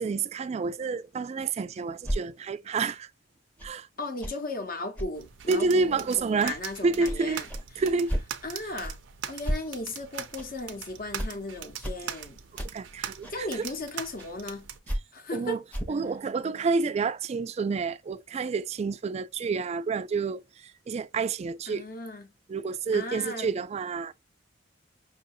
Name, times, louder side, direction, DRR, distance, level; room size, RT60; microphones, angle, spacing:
voice 1, 0.0-3.1 3.6-3.9 5.5-6.6 6.8-7.4 7.8-8.1 12.7-13.7 15.3-15.6 15.9-21.9 22.5-24.1, right 4 dB, 35° right, 0.3 m, -29 dB
sound 1, 2.0-2.2 3.6-3.7 4.2-4.3 5.0-5.1 5.6-5.7 6.2-6.3 7.0-7.2 7.5-7.6 8.1-8.3 8.8-8.9 9.4-9.6 10.4-10.5 11.2-11.3 11.8-12.0 12.6-12.7 13.2-13.3 14.2-14.3 14.9-15.0 15.7-16.0, equal, 10° left, 0.7 m, -31 dB
voice 2, 4.0-7.5 8.4-9.0 9.3-12.4 13.3-14.7 15.1-15.6 21.7-22.3 22.9-23.5, left 2 dB, 50° left, 0.8 m, -36 dB
sound 2, 5.2-14.8, right 9 dB, 90° right, 0.6 m, -42 dB
5.4 x 2.6 x 2.5 m
head